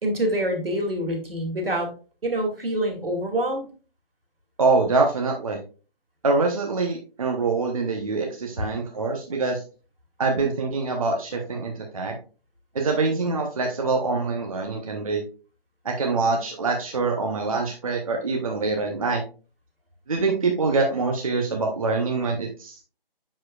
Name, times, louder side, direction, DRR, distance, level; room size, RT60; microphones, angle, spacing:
voice 1, 0.0-1.9 2.2-3.7, right 1 dB, 70° right, 2 dB, 2.6 m, -26 dB
voice 2, 4.6-5.6 6.2-9.6 10.2-12.1 12.7-15.2 15.8-19.2 20.1-22.8, right 3 dB, 35° right, 2 dB, 0.9 m, -24 dB
7.4 x 6.6 x 2.4 m, 0.35 s
figure-of-eight pair, 165°, 29 cm